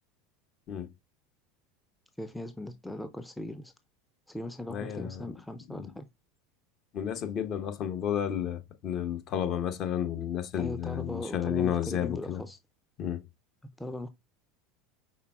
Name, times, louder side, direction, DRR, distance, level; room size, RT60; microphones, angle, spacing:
voice 1, 2.2-3.7 4.3-6.1 10.5-12.6 13.6-14.1, left 1 dB, 5° left, 0.4 m, -39 dB
voice 2, 4.7-5.2 5.7-5.9 6.9-12.4 13.0-13.2, left 9 dB, 45° left, 0.9 m, -32 dB
5.7 x 3.5 x 2.3 m
hypercardioid pair, 85°, 0 cm